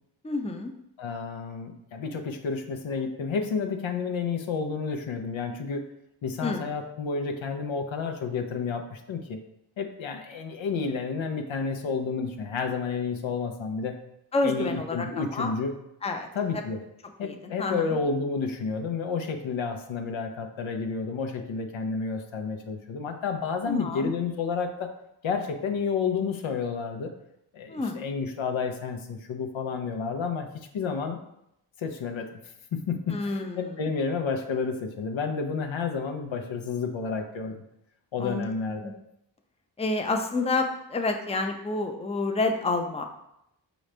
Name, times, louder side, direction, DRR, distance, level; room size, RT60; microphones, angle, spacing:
voice 1, 0.2-0.7 6.4-6.7 14.3-15.5 16.0-16.3 16.5-16.6 17.2-18.0 23.7-24.1 27.7-28.0 33.1-33.7 38.2-38.5 38.8-38.9 39.8-43.0, left 3 dB, 15° left, 4 dB, 0.5 m, -29 dB
voice 2, 1.0-5.9 6.2-9.4 9.8-14.0 14.4-15.8 16.3-16.8 17.2-24.9 25.2-27.1 27.5-30.5 30.7-31.2 31.8-32.3 32.7-37.6 38.1-39.0, left 5 dB, 80° left, 5 dB, 0.7 m, -30 dB
4.9 x 3.1 x 3.2 m, 0.80 s
cardioid pair, 50°, 46 cm